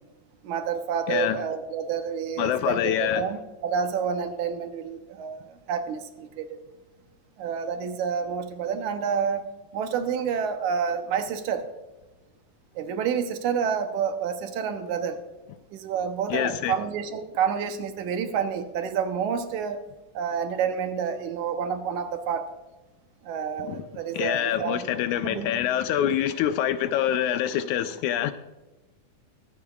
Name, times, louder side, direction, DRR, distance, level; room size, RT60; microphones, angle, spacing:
voice 1, 0.4-6.6 7.4-9.5 9.7-11.7 12.8-15.2 15.7-19.8 20.2-22.5 23.2-24.8 25.2-25.6, right 7 dB, 75° right, 2.1 m, -29 dB
voice 2, 1.1-1.4 2.4-3.3 16.3-16.8 23.6-23.8 24.1-28.3, left 10 dB, 80° left, 1.8 m, -25 dB
22.5 x 8.5 x 2.4 m
omnidirectional pair, 3.7 m